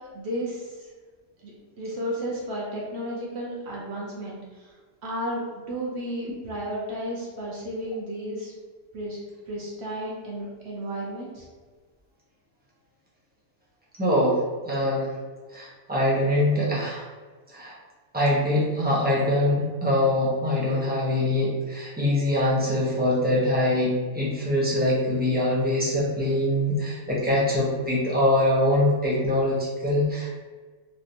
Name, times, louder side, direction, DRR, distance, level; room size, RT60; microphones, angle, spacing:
voice 1, 0.1-0.9 1.4-1.5 1.8-4.7 5.0-8.5 8.9-9.2 9.5-11.5, equal, 60° right, -4 dB, 0.9 m, -33 dB
voice 2, 14.0-15.1 15.5-17.0 17.5-17.7 18.1-30.3, left 1 dB, 10° right, -6 dB, 0.5 m, -23 dB
3.4 x 2.7 x 2.5 m, 1.4 s
omnidirectional pair, 1.3 m